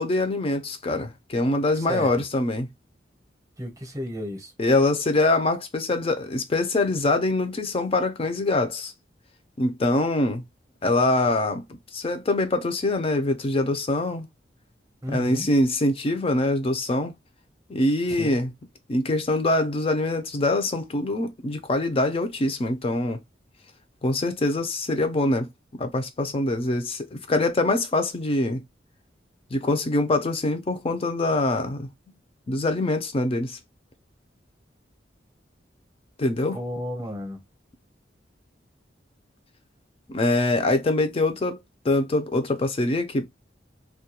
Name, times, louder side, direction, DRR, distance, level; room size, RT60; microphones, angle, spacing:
voice 1, 0.0-2.7 4.6-8.9 9.6-10.4 10.8-11.6 11.9-14.3 15.1-17.1 17.7-18.5 18.9-23.2 24.0-25.5 25.8-28.6 29.5-31.9 32.5-33.6 36.2-36.6 40.1-41.6 41.8-43.3, left 2 dB, 30° left, 0.4 m, -24 dB
voice 2, 1.7-2.1 3.6-4.5 15.0-15.5 18.1-18.4 36.5-37.4, equal, 20° right, 0.7 m, -32 dB
2.3 x 2.2 x 2.8 m
head